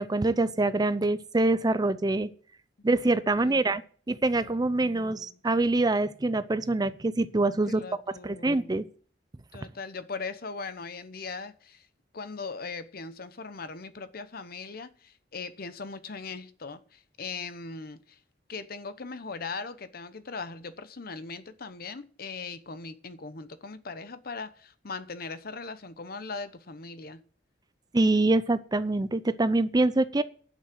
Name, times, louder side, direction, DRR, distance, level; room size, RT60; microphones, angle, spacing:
voice 1, 0.0-2.3 2.8-3.8 4.1-7.8 8.2-8.9 27.9-30.2, right 2 dB, 20° right, 0.5 m, -25 dB
voice 2, 3.4-3.8 4.4-5.4 7.8-8.8 9.5-11.9 12.1-18.2 18.5-27.2, left 4 dB, 55° left, 0.9 m, -40 dB
11.5 x 6.3 x 7.5 m
head